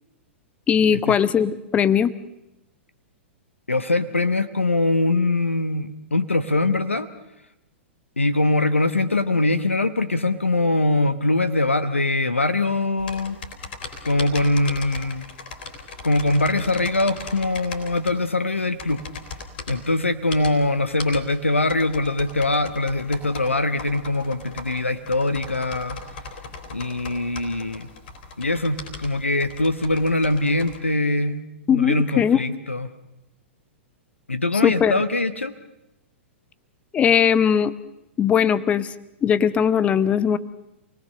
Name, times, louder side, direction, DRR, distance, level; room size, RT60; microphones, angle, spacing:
voice 1, 0.7-2.1 31.7-32.4 34.6-34.9 36.9-37.7 38.2-38.9 39.2-40.4, left 8 dB, 20° left, 16 dB, 0.8 m, -19 dB
voice 2, 3.7-7.1 8.2-13.4 14.0-15.2 16.0-19.0 19.7-26.0 26.7-27.9 28.4-32.9 34.3-35.5, left 2 dB, 80° left, 12 dB, 1.1 m, -22 dB
sound 1, 13.0-30.8, left 4 dB, 50° left, 3.6 m, -39 dB
28.0 x 19.0 x 6.6 m, 0.91 s
figure-of-eight pair, 105°, 7 cm